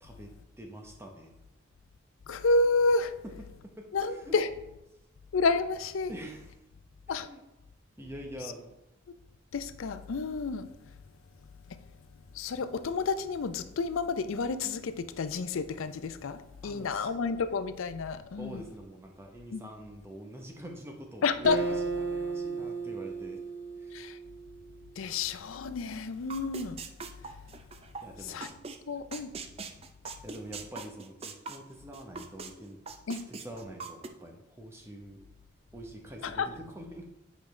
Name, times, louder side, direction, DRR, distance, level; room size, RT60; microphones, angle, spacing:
voice 1, 0.0-1.3 3.6-4.4 6.1-6.5 7.1-7.4 8.0-8.7 16.6-17.4 18.4-23.4 23.8-24.1 28.0-28.5 30.2-32.8 33.3-35.2 35.7-37.0, right 1 dB, 10° right, 2 dB, 0.8 m, -45 dB
voice 2, 2.3-3.2 3.9-4.5 5.3-6.1 7.1-7.3 9.5-10.9 11.7-11.8 12.3-18.6 19.5-19.6 21.2-21.6 23.9-24.2 25.0-26.8 27.2-27.4 28.3-28.5 28.9-29.3 30.1-30.2 33.1-33.3 36.2-36.5, left 3 dB, 80° left, 12 dB, 0.4 m, -30 dB
Acoustic guitar, 21.4-24.9, right 4 dB, 60° right, 0.7 m, -35 dB
sound 1, 26.3-28.0 28.4-28.8 29.1-32.5 32.9-34.1, right 4 dB, 30° right, 0.4 m, -41 dB
8.3 x 5.1 x 3.2 m, 0.93 s
head